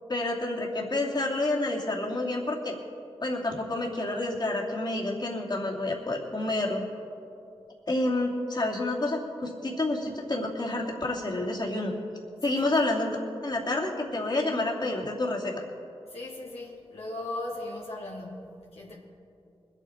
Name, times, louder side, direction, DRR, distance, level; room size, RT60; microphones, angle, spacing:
voice 1, 0.1-2.8 3.2-6.8 7.9-11.9 12.4-13.2 13.4-15.5, left 2 dB, 45° left, -3 dB, 2.8 m, -29 dB
voice 2, 16.1-18.9, left 2 dB, 75° left, -4 dB, 2.1 m, -38 dB
21.5 x 9.1 x 4.5 m, 2.6 s
cardioid pair, 40°, 10 cm